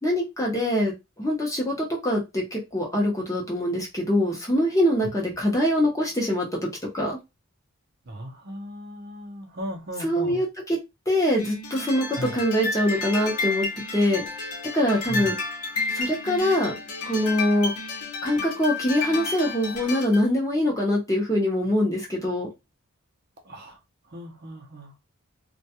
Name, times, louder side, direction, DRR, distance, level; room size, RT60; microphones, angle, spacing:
voice 1, 0.0-6.5 6.9-7.2 10.0-10.8 11.1-13.7 13.9-14.2 14.7-15.4 15.9-16.7 17.1-17.7 18.2-22.5, left 1 dB, 15° left, 0.7 m, -24 dB
voice 2, 8.1-10.4 12.2-12.3 15.1-15.2 23.4-23.8 24.1-24.9, equal, 45° right, 0.6 m, -36 dB
sound 1, 11.4-20.3, left 3 dB, 90° left, 0.9 m, -31 dB
2.2 x 2.2 x 2.8 m
head